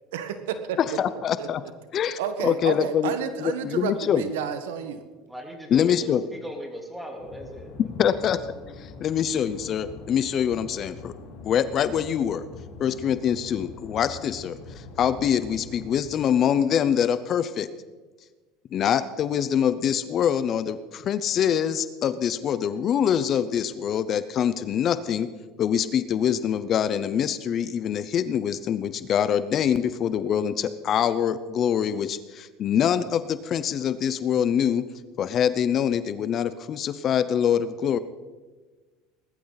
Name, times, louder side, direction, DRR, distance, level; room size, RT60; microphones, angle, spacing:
voice 1, 0.1-0.8 1.4-1.5 2.2-5.0, right 8 dB, 90° right, 9 dB, 1.4 m, -30 dB
voice 2, 1.0-1.6 1.9-3.1 3.4-4.2 5.7-6.2 7.8-8.4 8.8-11.1 11.4-12.4 12.8-17.7 18.7-25.3 25.6-34.9 35.2-38.0, left 9 dB, 40° left, 14 dB, 0.7 m, -24 dB
voice 3, 5.3-7.7 8.0-8.2, equal, 5° right, 1 dB, 3.4 m, -39 dB
sound 1, 7.2-16.0, left 3 dB, 65° left, 4.5 m, -43 dB
20.5 x 13.0 x 4.1 m, 1.3 s
supercardioid pair, 115°, 0 cm